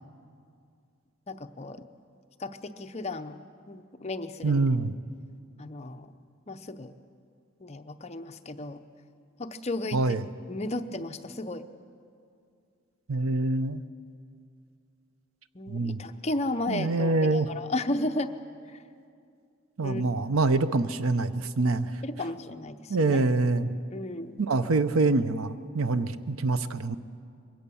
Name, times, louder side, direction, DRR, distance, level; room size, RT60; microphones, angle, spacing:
voice 1, 1.3-1.8 2.4-3.4 3.7-4.6 5.6-6.1 6.5-6.9 7.6-8.8 9.4-10.2 10.5-11.7 15.5-18.3 18.7-18.8 19.8-20.0 22.0-23.3 23.9-24.4, left 2 dB, 30° left, 8 dB, 0.7 m, -34 dB
voice 2, 4.4-4.9 9.9-10.2 13.1-13.8 15.7-16.0 16.7-17.5 19.8-22.0 22.9-23.7 24.4-27.0, right 3 dB, 80° right, 13 dB, 0.7 m, -25 dB
22.5 x 17.0 x 7.0 m, 2.4 s
head